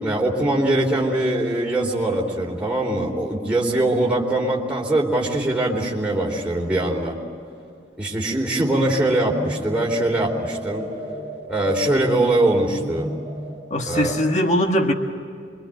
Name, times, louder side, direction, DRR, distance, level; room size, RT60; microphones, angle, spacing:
voice 1, 0.0-7.2 8.0-10.9 11.5-13.1 13.9-14.3, right 1 dB, 5° right, -2 dB, 3.9 m, -22 dB
sound 1, 9.0-14.4, right 1 dB, 20° left, 4.2 m, -35 dB
voice 2, 13.7-14.9, equal, 40° left, 3 dB, 1.6 m, -20 dB
26.0 x 24.0 x 9.2 m, 2.4 s
head